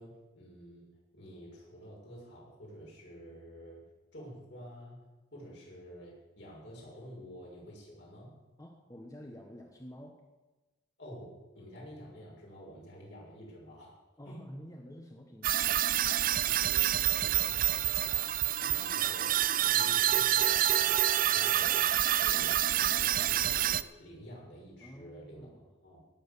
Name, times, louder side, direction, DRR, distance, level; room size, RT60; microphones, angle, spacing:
voice 1, 0.0-3.8 4.1-8.4 11.0-14.0 14.2-14.5 16.4-18.3 18.8-19.3 19.6-21.0 21.3-25.5 25.8-26.0, equal, 70° left, -3 dB, 6.2 m, -49 dB
voice 2, 8.6-10.2 14.2-15.7 18.6-19.1 24.8-25.6, equal, 20° left, 1 dB, 1.2 m, -49 dB
sound 1, 15.4-23.8, right 12 dB, 45° right, 0.4 m, -27 dB
17.5 x 7.8 x 7.0 m, 1.2 s
head